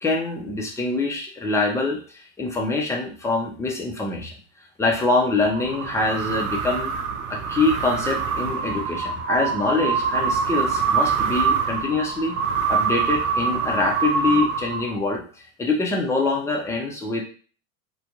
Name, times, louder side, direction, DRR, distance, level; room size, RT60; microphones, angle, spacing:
voice 1, 0.0-4.3 4.8-6.9 7.3-12.3 12.7-15.2 15.6-17.2, left 3 dB, 5° left, 0 dB, 0.4 m, -24 dB
sound 1, 5.4-15.2, right 6 dB, 85° right, 0.6 m, -25 dB
2.5 x 2.2 x 2.8 m, 0.40 s
supercardioid pair, 115°, 44 cm